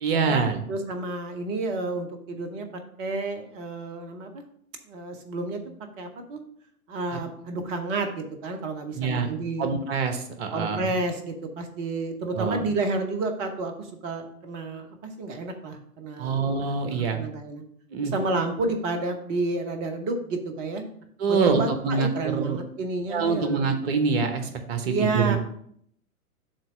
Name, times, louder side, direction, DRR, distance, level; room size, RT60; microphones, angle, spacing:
voice 1, 0.0-0.6 7.1-7.2 8.9-9.3 9.6-10.9 12.3-12.6 16.2-17.2 17.9-18.1 21.2-22.6 23.1-25.4, right 5 dB, 40° right, 7 dB, 1.1 m, -25 dB
voice 2, 0.7-2.7 3.0-4.4 4.9-5.6 6.0-6.4 6.9-9.6 10.5-17.6 18.1-20.8 21.3-23.7 24.8-25.4, right 3 dB, 15° right, 6 dB, 0.5 m, -30 dB
7.3 x 2.9 x 6.0 m, 0.66 s
figure-of-eight pair, 115°, 45 cm